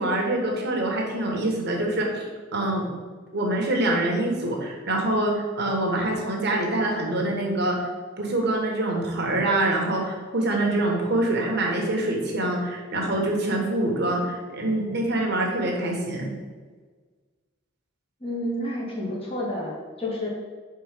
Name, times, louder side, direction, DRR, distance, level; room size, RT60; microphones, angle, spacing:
voice 1, 0.0-2.8 3.3-7.8 8.2-16.3, right 1 dB, 60° right, 0 dB, 1.4 m, -25 dB
voice 2, 18.2-20.3, left 1 dB, 30° left, -4 dB, 1.7 m, -30 dB
4.8 x 4.2 x 5.8 m, 1.4 s
head